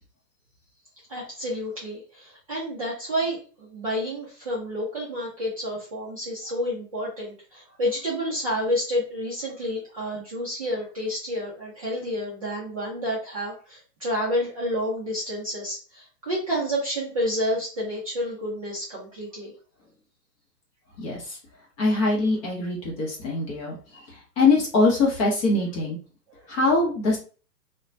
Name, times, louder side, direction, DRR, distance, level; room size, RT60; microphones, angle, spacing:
voice 1, 1.1-19.5, equal, 25° right, -6 dB, 0.4 m, -29 dB
voice 2, 21.0-21.4 21.8-26.0 26.5-27.2, left 3 dB, 20° left, -3 dB, 0.6 m, -23 dB
2.9 x 2.1 x 2.4 m, 0.37 s
hypercardioid pair, 140°, 49 cm